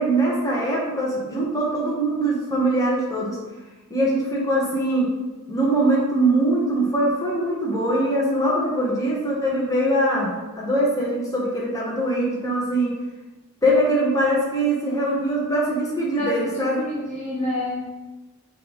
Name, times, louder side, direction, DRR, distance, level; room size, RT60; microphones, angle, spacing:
voice 1, 0.0-3.4 3.9-5.1 5.5-12.9 13.6-16.9, right 1 dB, 15° left, -5 dB, 1.3 m, -22 dB
voice 2, 16.2-17.8, left 1 dB, 30° left, -6 dB, 1.1 m, -28 dB
7.6 x 3.6 x 4.0 m, 1.1 s
head